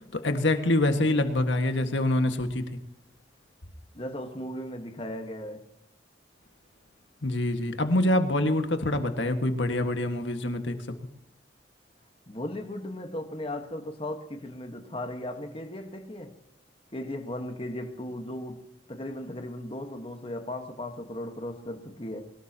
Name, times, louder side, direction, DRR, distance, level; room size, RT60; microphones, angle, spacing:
voice 1, 0.1-2.8 7.2-10.8, left 1 dB, 90° left, 1.8 m, -25 dB
voice 2, 3.9-5.6 12.3-16.3 16.9-22.3, left 1 dB, 30° left, 1.5 m, -37 dB
23.0 x 19.5 x 3.0 m
head